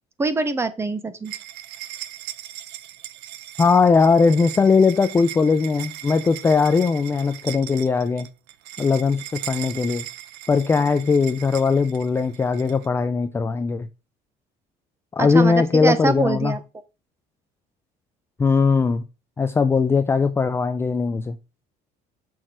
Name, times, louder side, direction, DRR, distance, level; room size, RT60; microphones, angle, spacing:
voice 1, 0.2-1.3 15.2-16.6, right 3 dB, 15° right, 0.8 m, -24 dB
sound 1, 1.2-12.9, right 13 dB, 75° right, 0.7 m, -38 dB
voice 2, 3.6-8.3 8.8-10.1 10.5-13.9 15.1-16.5 18.4-19.0 19.4-21.4, left 4 dB, 15° left, 0.4 m, -19 dB
6.4 x 6.0 x 4.6 m
cardioid pair, 155°, 17 cm